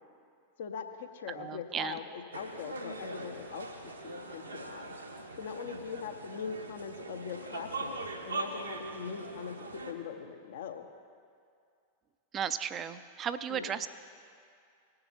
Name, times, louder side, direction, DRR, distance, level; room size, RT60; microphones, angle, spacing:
voice 1, 0.6-4.9 5.4-8.0 8.3-9.5 9.8-10.8 13.5-13.8, left 6 dB, 60° left, 6 dB, 0.9 m, -41 dB
voice 2, 1.4-2.0 12.3-13.9, right 8 dB, 25° right, 13 dB, 0.5 m, -35 dB
sound 1, 2.3-9.9, right 2 dB, 80° right, 1.1 m, -41 dB
19.5 x 6.7 x 4.3 m, 2.3 s
figure-of-eight pair, 90°, 0 cm